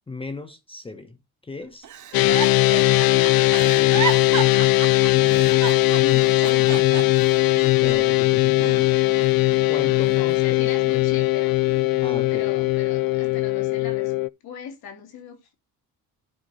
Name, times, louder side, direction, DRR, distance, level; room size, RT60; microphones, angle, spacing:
voice 1, 0.1-1.2 1.4-1.9 7.8-9.0 9.6-10.6 12.0-12.5, left 3 dB, 15° left, 0.9 m, -36 dB
Giggle, 1.8-8.2 8.6-9.6 10.0-11.1 11.7-12.0, right 9 dB, 55° right, 1.6 m, -33 dB
sound 1, 2.1-14.3, left 19 dB, 70° left, 0.5 m, -19 dB
voice 2, 5.9-6.7 9.7-11.6 12.3-14.1 14.4-15.5, left 7 dB, 85° left, 3.3 m, -38 dB
11.5 x 5.0 x 4.0 m
cardioid pair, 145°, 36 cm